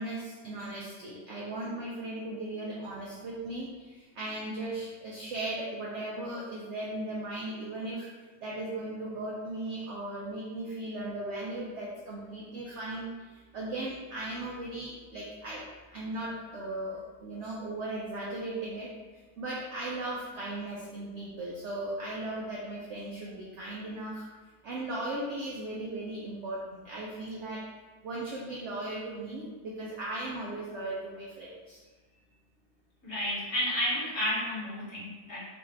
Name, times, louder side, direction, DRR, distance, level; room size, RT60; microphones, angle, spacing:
voice 1, 0.0-8.1 8.4-18.9 19.4-24.2 24.6-27.7 28.0-31.8, right 1 dB, 70° right, -4 dB, 0.6 m, -37 dB
voice 2, 33.0-35.4, equal, 50° left, -8 dB, 1.3 m, -31 dB
3.8 x 2.4 x 3.4 m, 1.3 s
omnidirectional pair, 1.8 m